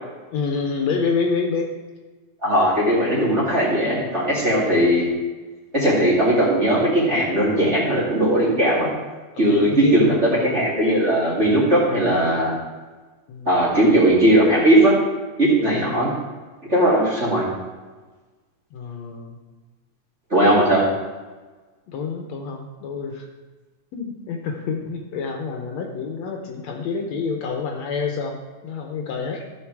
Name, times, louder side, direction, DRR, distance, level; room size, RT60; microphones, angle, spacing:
voice 1, 0.3-1.7 9.4-10.2 13.3-13.7 15.7-16.1 18.7-19.4 21.9-23.3 23.9-29.5, left 5 dB, 70° left, 2 dB, 2.0 m, -27 dB
voice 2, 2.4-5.1 5.7-8.9 9.4-12.5 13.5-15.0 15.4-16.1 16.7-17.5 20.3-20.8, right 1 dB, 25° right, -6 dB, 2.4 m, -18 dB
14.0 x 6.4 x 4.7 m, 1.3 s
omnidirectional pair, 3.5 m